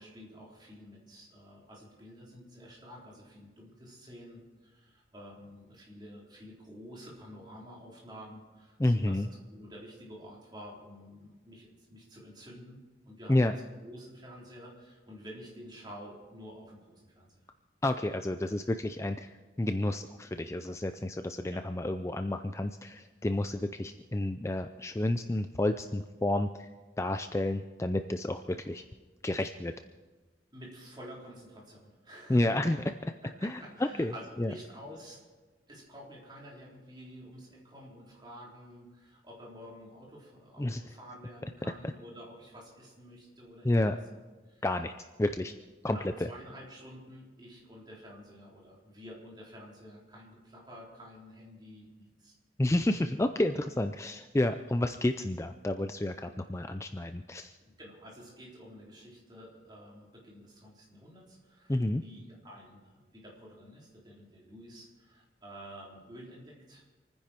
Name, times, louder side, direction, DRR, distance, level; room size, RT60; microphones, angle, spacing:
voice 1, 0.0-9.2 9.5-17.5 21.5-21.6 30.5-32.6 32.9-35.2 35.7-44.0 44.4-44.7 45.8-52.4 57.6-66.8, equal, 25° right, -3 dB, 3.9 m, -50 dB
voice 2, 8.8-9.3 13.3-13.5 17.8-26.7 27.0-28.8 29.2-29.7 32.3-32.8 33.4-33.6 34.0-34.1 34.4-34.5 40.6-40.8 43.6-44.0 44.6-44.9 45.2-45.5 45.8-46.0 52.6-57.5 61.7-62.0, left 1 dB, 15° left, 8 dB, 0.5 m, -30 dB
27.5 x 10.0 x 4.5 m, 1.3 s
head